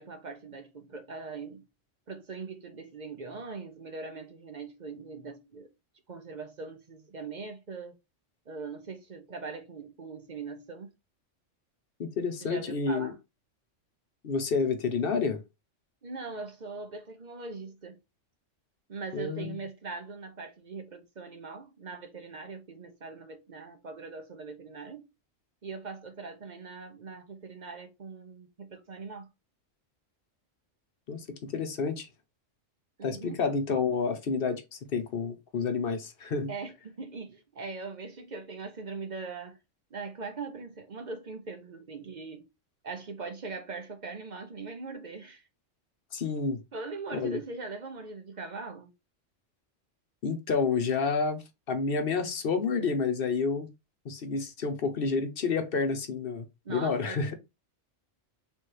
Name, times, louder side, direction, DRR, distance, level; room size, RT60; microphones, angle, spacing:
voice 1, 0.0-1.7 2.1-5.7 6.1-8.0 8.5-10.9 12.4-13.2 16.0-18.0 18.9-25.0 25.6-29.3 33.0-33.4 36.5-39.6 39.9-42.5 42.8-45.5 46.7-48.9 56.6-57.3, right 4 dB, 45° right, 0.7 m, -41 dB
voice 2, 12.0-13.1 14.2-15.4 19.1-19.6 31.1-32.1 33.0-36.5 46.1-46.6 47.1-47.4 50.2-53.7 54.0-57.3, left 5 dB, 50° left, 0.9 m, -29 dB
3.5 x 3.2 x 4.5 m
omnidirectional pair, 1.3 m